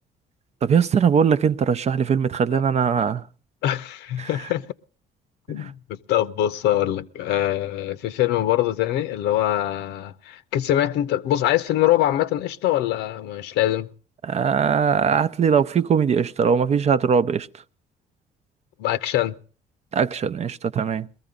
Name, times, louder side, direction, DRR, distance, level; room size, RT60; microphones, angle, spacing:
voice 1, 0.6-3.2 4.2-4.3 14.2-17.5 19.9-21.1, right 6 dB, 40° right, 0.6 m, -20 dB
voice 2, 3.6-4.7 5.5-13.9 18.8-19.3, left 13 dB, 90° left, 0.8 m, -23 dB
21.0 x 14.5 x 3.7 m
cardioid pair, 110°, 17 cm